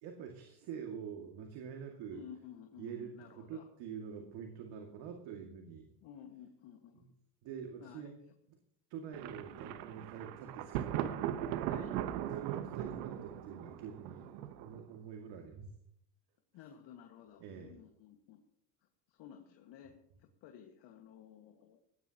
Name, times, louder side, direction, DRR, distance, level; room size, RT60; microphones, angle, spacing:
voice 1, 0.0-2.2 2.8-5.9 6.9-7.1 7.4-8.2 8.9-11.2 12.3-15.7 17.4-17.8, right 7 dB, 65° right, 3 dB, 2.4 m, -46 dB
voice 2, 2.1-3.6 6.0-7.1 7.8-8.0 11.6-12.0 16.5-18.4 19.1-21.8, left 9 dB, 60° left, 4 dB, 1.9 m, -54 dB
Thunder, 9.1-14.9, right 11 dB, 80° right, 1.2 m, -39 dB
19.5 x 17.5 x 3.0 m, 0.70 s
supercardioid pair, 90°, 48 cm